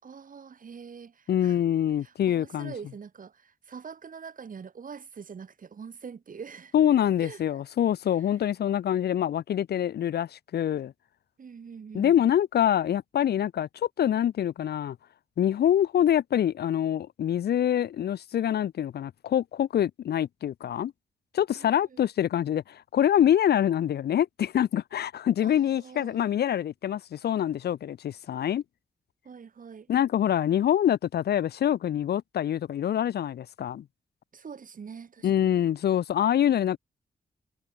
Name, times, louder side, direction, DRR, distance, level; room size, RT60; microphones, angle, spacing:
voice 1, 0.0-1.6 2.0-6.8 7.2-7.4 8.2-8.3 11.4-12.1 21.5-22.1 25.4-26.3 29.2-29.9 34.3-35.6, right 6 dB, 50° right, 7.0 m, -44 dB
voice 2, 1.3-2.7 6.7-10.9 11.9-13.7 14.0-15.0 15.4-20.9 21.3-28.6 29.9-33.8 35.2-36.8, left 10 dB, 70° left, 0.5 m, -25 dB
wide cardioid pair, 160°, 17 cm